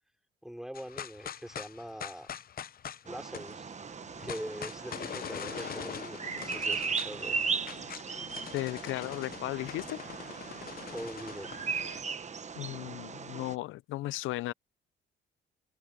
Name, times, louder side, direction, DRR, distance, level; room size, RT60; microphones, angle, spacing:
voice 1, 0.4-2.3 3.0-3.7 4.2-7.4 10.9-11.5, equal, ahead, 5.1 m, -42 dB
sound 1, 0.7-12.0, left 9 dB, 50° left, 0.7 m, -43 dB
Bird vocalization bird call bird song, 3.1-13.6, right 5 dB, 35° right, 1.2 m, -37 dB
voice 2, 8.5-10.0 12.5-14.5, left 18 dB, 90° left, 0.5 m, -35 dB
cardioid pair, 90°, 20 cm